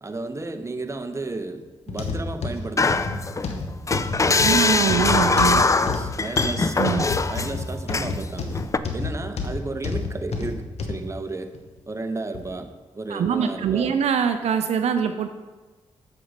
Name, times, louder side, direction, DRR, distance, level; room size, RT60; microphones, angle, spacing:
voice 1, 0.0-3.0 4.2-8.6 8.9-11.5 11.9-14.0, right 2 dB, 25° right, 7 dB, 0.9 m, -33 dB
sound 1, 1.9-11.0 11.5-11.7 12.3-12.4, left 4 dB, 65° left, 1.0 m, -29 dB
sound 2, 2.8-3.5 3.9-7.5 7.9-8.2 8.5-8.8, left 3 dB, 25° left, 0.4 m, -22 dB
voice 2, 4.4-5.6 6.8-7.1 13.1-15.3, right 7 dB, 70° right, 8 dB, 0.4 m, -23 dB
7.7 x 5.3 x 5.2 m, 1.3 s
supercardioid pair, 40°, 12 cm